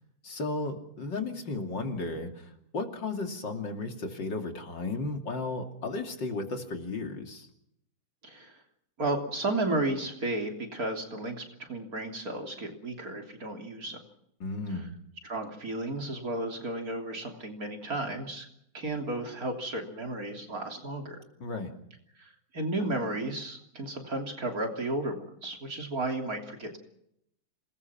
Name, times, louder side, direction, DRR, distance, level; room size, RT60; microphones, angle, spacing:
voice 1, 0.2-2.5 2.7-7.5 14.4-14.9 21.4-21.7, left 3 dB, 60° left, 4 dB, 3.5 m, -34 dB
voice 2, 9.0-14.0 15.2-18.5 18.7-21.2 22.2-26.8, right 2 dB, 45° right, 3 dB, 3.6 m, -33 dB
27.5 x 20.0 x 6.0 m, 0.75 s
omnidirectional pair, 2.2 m